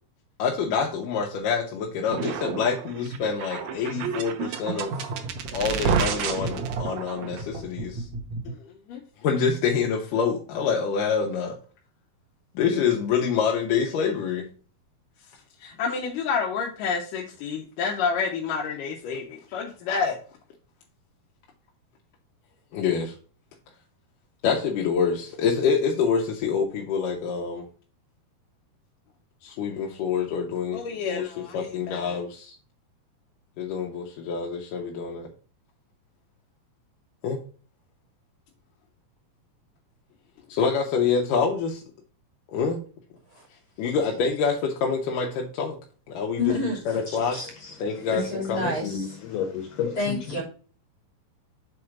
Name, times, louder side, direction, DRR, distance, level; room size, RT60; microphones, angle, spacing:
voice 1, 0.4-4.9 5.5-8.0 8.9-11.5 12.6-14.4 15.6-20.2 22.7-23.1 24.4-27.6 29.4-32.5 33.6-35.3 37.2-37.4 40.5-41.8 42.5-42.8 43.8-45.7 46.1-46.4 46.9-47.4 47.8-48.2 48.5-48.7, left 6 dB, 70° left, 2.3 m, -26 dB
sound 1, 2.1-8.5, right 6 dB, 80° right, 1.6 m, -30 dB
voice 2, 46.4-47.5 48.1-49.2 49.9-50.4, left 2 dB, 40° left, 3.8 m, -29 dB
voice 3, 47.4-47.8 48.8-50.2, left 7 dB, 85° left, 1.4 m, -31 dB
6.5 x 4.2 x 5.8 m
omnidirectional pair, 4.4 m